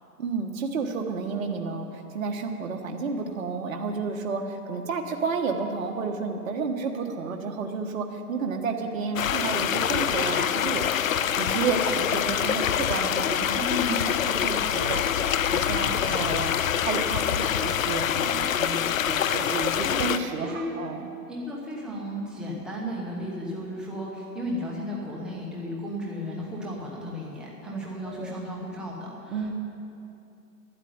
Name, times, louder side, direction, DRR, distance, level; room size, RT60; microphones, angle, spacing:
voice 1, 0.2-11.1 11.4-13.6 14.2-16.5 16.8-21.1 28.0-28.4 29.3-29.5, right 4 dB, 60° right, 3 dB, 1.4 m, -31 dB
sound 1, 9.2-20.2, left 9 dB, 60° left, 0.6 m, -25 dB
voice 2, 13.5-14.3 19.8-20.0 20.4-20.7 21.3-29.5, left 1 dB, ahead, -4 dB, 0.9 m, -34 dB
12.5 x 9.0 x 9.6 m, 2.7 s
hypercardioid pair, 160°, 47 cm